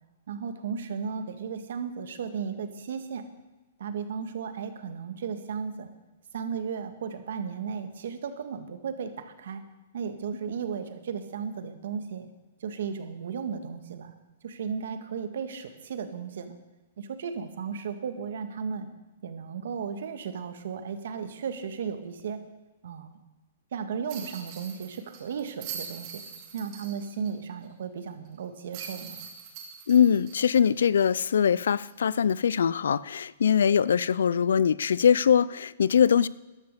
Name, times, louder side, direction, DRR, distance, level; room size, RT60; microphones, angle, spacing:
voice 1, 0.3-3.3 3.8-5.9 6.3-9.6 9.9-12.3 12.6-14.1 14.4-16.6 17.0-18.9 19.2-22.4 22.8-23.1 23.7-26.2 26.5-29.3, right 6 dB, 70° right, 9 dB, 1.7 m, -35 dB
sound 1, 24.1-27.3 27.6-27.7 28.7-31.4 31.8-31.9 34.1-34.3, right 7 dB, 35° right, 2.6 m, -43 dB
voice 2, 29.9-36.3, left 7 dB, 85° left, 20 dB, 0.4 m, -22 dB
14.0 x 11.0 x 6.7 m, 1.2 s
hypercardioid pair, 160°, 0 cm